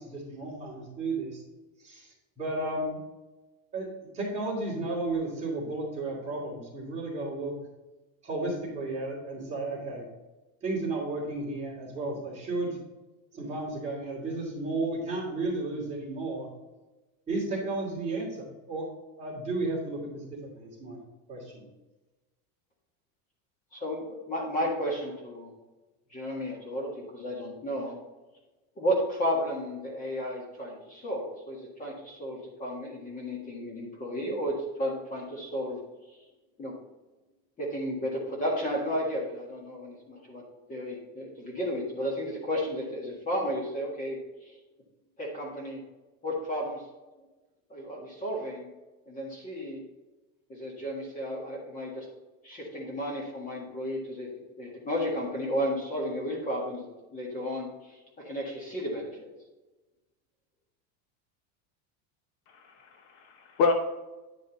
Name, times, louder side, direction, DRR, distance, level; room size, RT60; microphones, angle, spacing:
voice 1, 0.0-1.4 1.8-3.0 3.7-3.9 4.1-7.5 8.2-10.0 10.6-12.8 13.3-16.5 17.3-18.8 19.2-21.0 21.3-21.7, right 2 dB, 15° right, -5 dB, 2.8 m, -33 dB
voice 2, 23.7-25.5 26.1-28.0 28.8-35.8 36.6-36.7 37.6-40.4 40.7-44.5 45.2-45.8 46.2-46.8 47.7-48.7 49.1-49.8 50.5-52.1 52.4-59.1, equal, 20° left, -2 dB, 1.7 m, -33 dB
voice 3, 62.5-63.7, left 4 dB, 55° left, 5 dB, 0.8 m, -28 dB
9.7 x 5.2 x 4.0 m, 1.1 s
cardioid pair, 175°, 43 cm